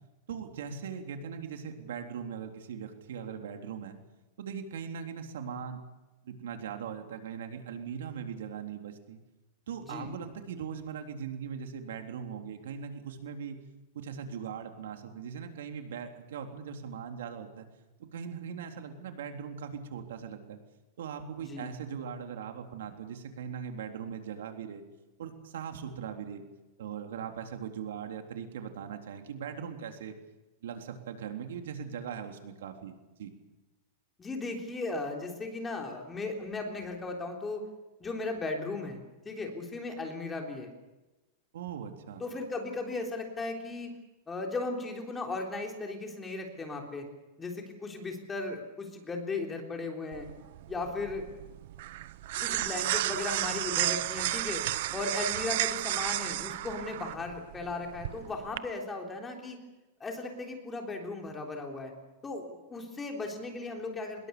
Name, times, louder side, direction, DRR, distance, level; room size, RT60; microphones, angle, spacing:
voice 1, 0.3-4.0 4.4-5.8 6.2-9.2 9.7-13.6 13.9-17.7 18.0-20.6 21.0-24.8 25.2-26.4 26.8-30.1 30.6-32.9 33.2-33.3 41.5-42.2, right 7 dB, 85° right, 4 dB, 3.7 m, -40 dB
voice 2, 34.2-37.6 38.0-40.7 42.2-43.9 44.3-47.1 47.4-50.3 50.7-51.3 52.4-54.6 54.9-59.6 60.0-61.9 62.2-64.3, left 3 dB, 10° left, 2 dB, 3.6 m, -36 dB
sound 1, 50.1-58.6, right 15 dB, 55° right, 0.9 m, -33 dB
25.0 x 21.5 x 7.0 m, 1.1 s
supercardioid pair, 165°, 0 cm